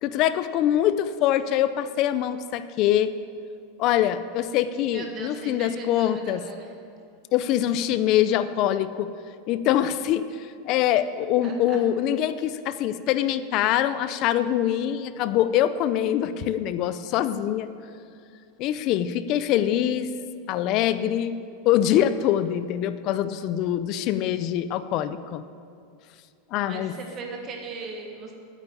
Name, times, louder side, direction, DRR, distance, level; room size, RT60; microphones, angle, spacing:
voice 1, 0.0-3.1 3.8-6.4 7.3-9.1 9.5-17.7 18.6-20.1 20.5-21.4 21.6-25.4 26.5-26.9, left 11 dB, 35° left, 13 dB, 0.5 m, -24 dB
voice 2, 4.9-6.7 11.4-11.8 26.7-28.3, right 4 dB, 25° right, 1 dB, 1.6 m, -38 dB
9.2 x 8.7 x 9.5 m, 2.4 s
supercardioid pair, 180°, 0 cm